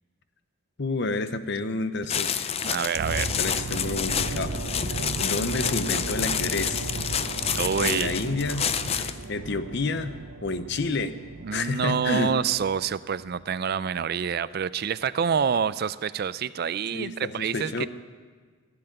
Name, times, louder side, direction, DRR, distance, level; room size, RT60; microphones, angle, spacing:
voice 1, 0.8-2.5 3.0-4.6 4.9-6.9 7.8-11.1 11.5-12.3 16.9-17.9, left 3 dB, 55° left, 11 dB, 0.7 m, -30 dB
sound 1, 2.1-9.2, left 8 dB, 30° left, 0.4 m, -29 dB
voice 2, 2.6-3.3 7.5-8.2 11.4-17.9, right 7 dB, 45° right, 16 dB, 0.4 m, -27 dB
sound 2, 3.0-12.9 13.2-13.4, right 2 dB, 80° right, 0.8 m, -35 dB
sound 3, 7.1-11.8, equal, 80° left, 3.2 m, -49 dB
15.5 x 7.9 x 9.0 m, 1.5 s
head